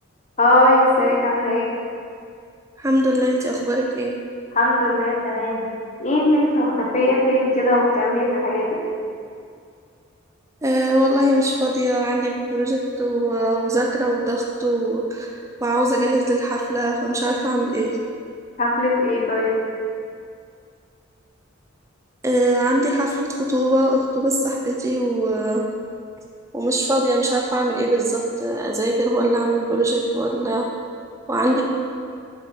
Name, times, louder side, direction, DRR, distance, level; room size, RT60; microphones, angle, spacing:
voice 1, 0.4-1.7 4.5-5.7 6.0-8.8 18.6-19.6, left 1 dB, 35° left, -3 dB, 1.3 m, -19 dB
voice 2, 2.8-4.2 10.6-15.3 15.6-17.9 22.2-25.6 26.5-30.7 31.3-31.6, right 1 dB, 15° right, -1 dB, 0.5 m, -21 dB
6.3 x 5.5 x 5.4 m, 2.3 s
head